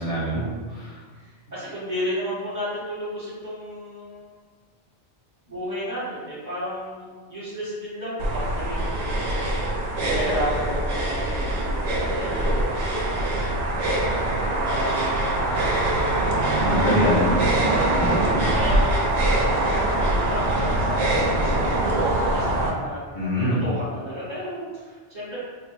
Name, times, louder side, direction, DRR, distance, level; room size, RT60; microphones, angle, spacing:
voice 1, 0.0-1.0 16.6-17.3 17.9-18.2 23.1-23.6, left 1 dB, 85° left, -8 dB, 1.4 m, -25 dB
voice 2, 1.1-4.3 5.5-9.5 10.0-13.7 14.4-15.8 17.7-23.0 23.6-25.4, equal, 40° right, -11 dB, 1.1 m, -32 dB
sound 1, 8.2-22.7, right 1 dB, 65° right, 0.8 m, -23 dB
3.2 x 2.1 x 3.0 m, 1.4 s
omnidirectional pair, 1.2 m